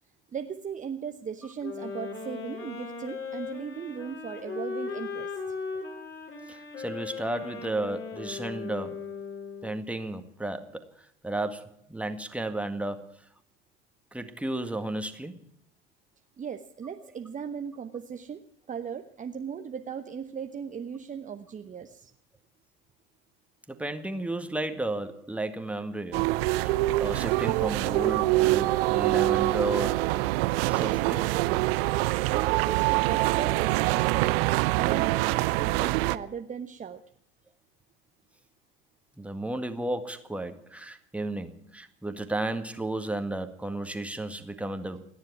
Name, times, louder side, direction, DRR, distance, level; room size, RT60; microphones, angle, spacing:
voice 1, 0.3-5.4 16.4-22.1 32.0-34.4 34.8-37.0, right 7 dB, 20° right, 7 dB, 1.0 m, -38 dB
sound 1, 1.6-9.8, left 5 dB, 35° left, 5.7 m, -38 dB
voice 2, 6.5-9.1 9.6-10.8 11.2-13.1 14.1-15.4 23.7-26.3 26.6-30.1 30.6-31.3 39.2-45.1, right 2 dB, 5° right, 7 dB, 1.9 m, -33 dB
sound 2, 26.1-36.2, right 19 dB, 60° right, 0.8 m, -25 dB
29.5 x 10.5 x 4.7 m, 0.68 s
figure-of-eight pair, 70°, 34 cm